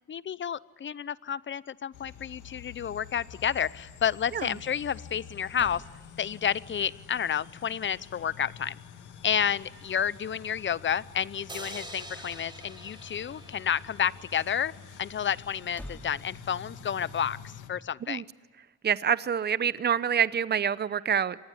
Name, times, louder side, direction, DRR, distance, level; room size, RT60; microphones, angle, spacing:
voice 1, 0.1-5.8 6.2-8.8 9.2-14.7 15.0-18.2, left 8 dB, 40° left, 19 dB, 0.8 m, -30 dB
sound 1, 1.9-17.7, left 6 dB, 80° left, 2.3 m, -48 dB
sound 2, 5.5-6.7 12.2-13.0 15.4-17.0, equal, 5° left, 3.8 m, -48 dB
sound 3, 11.5-14.8, right 1 dB, 15° right, 3.7 m, -45 dB
voice 2, 18.8-21.4, right 8 dB, 35° right, 17 dB, 0.8 m, -26 dB
26.5 x 19.5 x 10.0 m, 1.4 s
cardioid pair, 90°, 30 cm